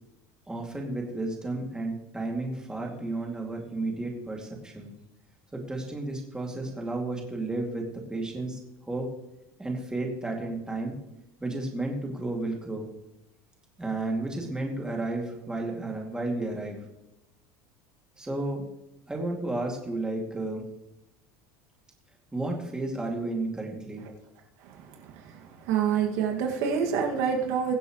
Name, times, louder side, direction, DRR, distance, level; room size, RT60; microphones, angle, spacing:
voice 1, 0.5-4.9 5.5-8.6 8.9-9.1 9.6-10.9 11.4-12.9 13.8-16.8 18.2-18.6 19.1-20.7 22.3-24.0, right 2 dB, 10° right, 0 dB, 2.5 m, -32 dB
voice 2, 25.7-27.7, right 7 dB, 75° right, 1 dB, 2.1 m, -26 dB
22.0 x 7.8 x 3.2 m, 0.88 s
supercardioid pair, 125°, 9 cm